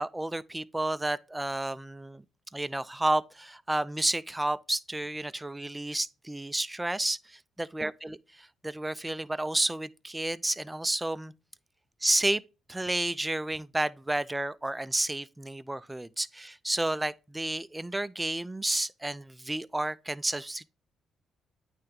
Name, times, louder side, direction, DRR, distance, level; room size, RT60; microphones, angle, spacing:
voice 1, 0.0-2.2 2.5-11.3 12.0-12.4 12.7-20.7, right 1 dB, 10° right, 0.3 m, -31 dB
8.8 x 3.3 x 3.5 m
cardioid pair, 90°, 0 cm